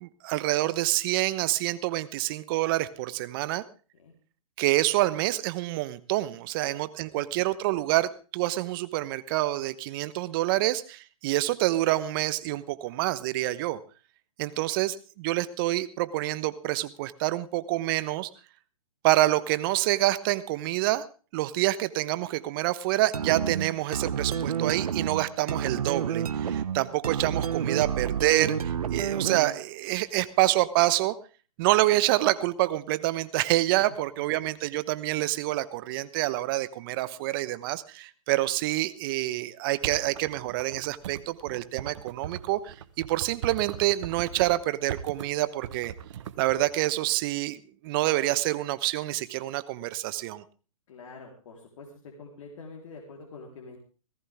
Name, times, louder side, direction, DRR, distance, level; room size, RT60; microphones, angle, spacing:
voice 1, 0.0-3.6 4.6-13.8 14.4-18.3 19.0-21.0 21.3-31.1 31.6-45.9 46.4-50.4, right 16 dB, 40° right, 15 dB, 1.0 m, -27 dB
sound 1, 23.1-29.6, right 8 dB, 80° right, 1.0 m, -30 dB
sound 2, 39.8-44.6 44.9-45.3 45.6-46.6, right 9 dB, 55° right, 1.4 m, -39 dB
voice 2, 50.9-51.9 52.2-53.8, left 4 dB, 55° left, -1 dB, 3.9 m, -45 dB
18.0 x 15.5 x 3.6 m, 0.36 s
hypercardioid pair, 135°, 19 cm